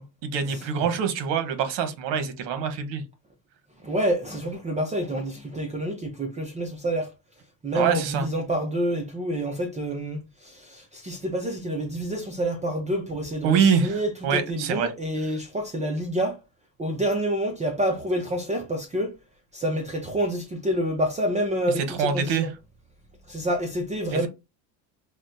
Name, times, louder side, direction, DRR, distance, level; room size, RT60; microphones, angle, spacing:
voice 1, 0.2-3.0 7.7-8.3 13.4-14.9 15.3-15.4 21.8-22.5 24.1-24.3, right 6 dB, 60° right, 1.1 m, -25 dB
voice 2, 3.8-7.1 7.6-16.4 16.8-19.1 19.5-22.5 23.3-24.3, right 1 dB, 15° right, 0.5 m, -28 dB
5.9 x 2.2 x 2.6 m
supercardioid pair, 115°, 48 cm